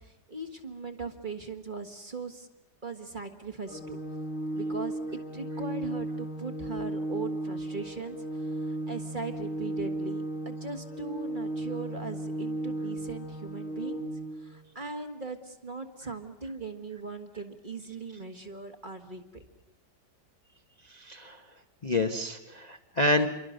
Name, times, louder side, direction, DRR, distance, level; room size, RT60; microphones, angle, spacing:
voice 1, 0.0-2.5 2.8-4.0 4.5-14.1 14.4-19.4, right 4 dB, 30° right, 6 dB, 1.8 m, -39 dB
Organ, 3.7-14.6, right 1 dB, 50° left, 1.6 m, -35 dB
voice 2, 20.9-21.4 21.8-23.3, left 1 dB, 30° left, 5 dB, 1.1 m, -28 dB
28.0 x 23.5 x 6.6 m, 0.90 s
omnidirectional pair, 1.8 m